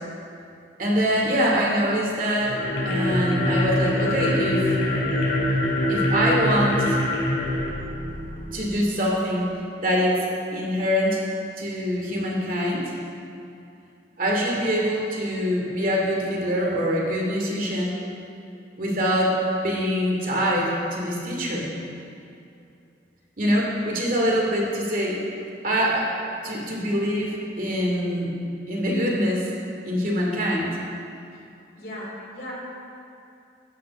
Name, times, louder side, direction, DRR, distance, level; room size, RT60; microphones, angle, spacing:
voice 1, 0.8-2.6 2.8-4.8 5.9-7.0 8.5-9.5 9.8-10.2 10.5-11.2 11.6-12.8 14.2-18.0 18.8-19.4 19.6-21.7 23.4-25.2 25.6-28.3 28.7-29.5 29.8-30.8, equal, 50° right, -3 dB, 2.5 m, -24 dB
sound 1, 2.4-8.6, left 1 dB, 85° left, 3.4 m, -24 dB
voice 2, 31.8-32.5, left 1 dB, 60° left, -4 dB, 3.4 m, -37 dB
13.5 x 9.5 x 5.3 m, 2.6 s
head